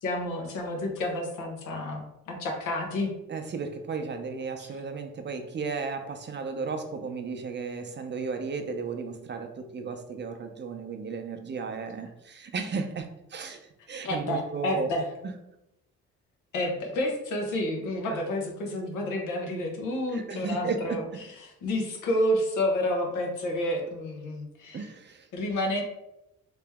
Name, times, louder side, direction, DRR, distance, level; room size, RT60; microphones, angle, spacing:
voice 1, 0.0-3.1 14.0-15.0 16.5-21.0 21.4-24.9 25.3-25.8, left 1 dB, 85° left, 1 dB, 1.0 m, -30 dB
voice 2, 3.3-14.9 15.2-15.3 18.1-18.2 20.1-21.2 24.7-25.3, right 4 dB, 35° right, 5 dB, 0.6 m, -34 dB
3.3 x 2.9 x 3.4 m, 0.86 s
cardioid pair, 90°, 30 cm